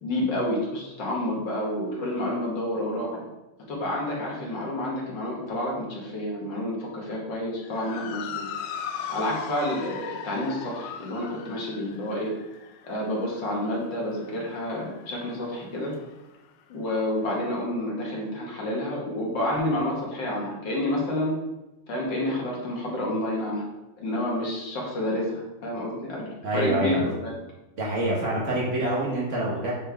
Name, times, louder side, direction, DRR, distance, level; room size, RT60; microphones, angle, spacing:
voice 1, 0.0-3.3 3.7-8.4 9.1-12.3 12.8-15.9 16.7-21.4 21.9-23.6 24.0-27.3, left 1 dB, 50° left, -3 dB, 1.7 m, -29 dB
Motor vehicle (road) / Siren, 7.6-16.2, left 8 dB, 90° left, 2.0 m, -39 dB
voice 2, 26.4-27.0 27.8-29.7, right 1 dB, 85° right, -4 dB, 0.6 m, -26 dB
7.8 x 4.3 x 3.4 m, 0.98 s
omnidirectional pair, 3.3 m